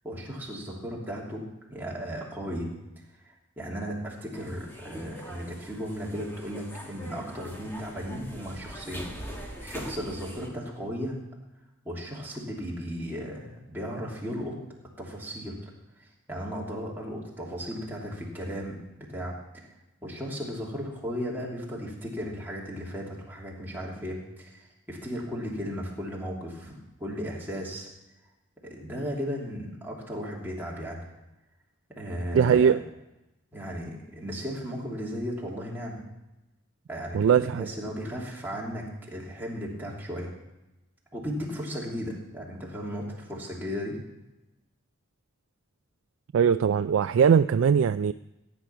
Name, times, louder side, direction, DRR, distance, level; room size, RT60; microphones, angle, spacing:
voice 1, 0.0-2.7 3.2-9.1 9.6-11.2 11.8-14.6 15.0-15.7 16.0-19.7 20.0-27.9 28.6-31.0 32.0-32.7 33.5-36.0 36.9-40.3 41.1-44.0, equal, 10° right, -4 dB, 2.9 m, -35 dB
sound 1, 4.3-10.5, equal, 10° left, 1.7 m, -42 dB
voice 2, 32.3-32.8 37.1-37.7 46.3-48.1, right 7 dB, 85° right, 11 dB, 0.3 m, -21 dB
15.0 x 9.3 x 5.7 m, 0.97 s
head